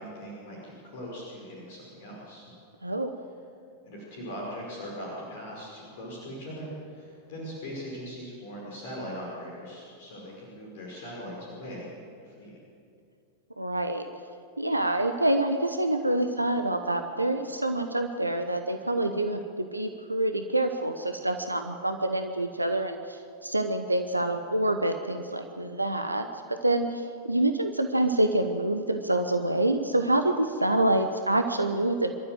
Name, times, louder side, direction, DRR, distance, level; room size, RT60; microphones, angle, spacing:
voice 1, 0.0-2.5 3.8-12.6, equal, 55° left, -3 dB, 5.3 m, -40 dB
voice 2, 13.6-14.1 14.6-32.1, right 1 dB, 85° right, 6 dB, 1.0 m, -27 dB
26.5 x 13.0 x 7.7 m, 2.5 s
figure-of-eight pair, 90°, 0 cm